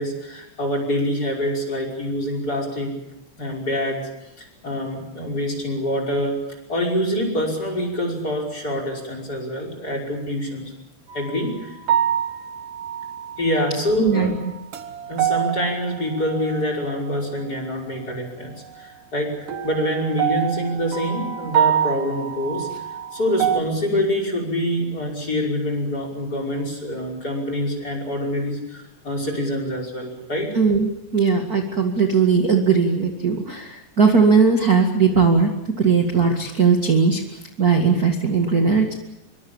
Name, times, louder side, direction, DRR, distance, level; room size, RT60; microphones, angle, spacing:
voice 1, 0.0-3.0 3.4-4.1 4.4-6.4 6.7-10.7 11.1-11.8 13.4-14.4 15.1-22.7 23.1-30.5, equal, 20° left, 3 dB, 5.8 m, -25 dB
sound 1, 11.1-11.4 11.9-13.7 14.2-17.1 19.5-23.6, right 9 dB, 60° right, 2.7 m, -26 dB
voice 2, 14.0-14.3 30.5-35.5 35.8-37.2 37.6-38.9, right 5 dB, 40° right, 3 dB, 1.4 m, -18 dB
26.0 x 24.0 x 7.2 m, 0.88 s
omnidirectional pair, 5.0 m